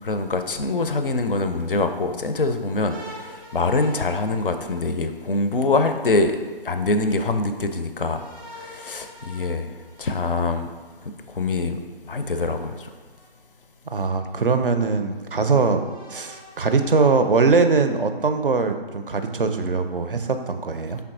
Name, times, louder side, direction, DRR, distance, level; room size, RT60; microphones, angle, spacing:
voice 1, 0.0-6.3 6.6-8.2 8.6-9.7 10.0-10.7 11.3-11.8 12.1-12.9, left 3 dB, 60° left, 8 dB, 0.4 m, -24 dB
sound 1, 2.9-5.5 8.0-11.0 12.3-13.2 14.0-14.1 15.7-17.7, equal, ahead, 0.5 m, -46 dB
voice 2, 13.9-15.8 16.1-21.0, right 4 dB, 60° right, 7 dB, 0.4 m, -21 dB
5.4 x 3.4 x 2.5 m, 1.4 s
figure-of-eight pair, 155°, 31 cm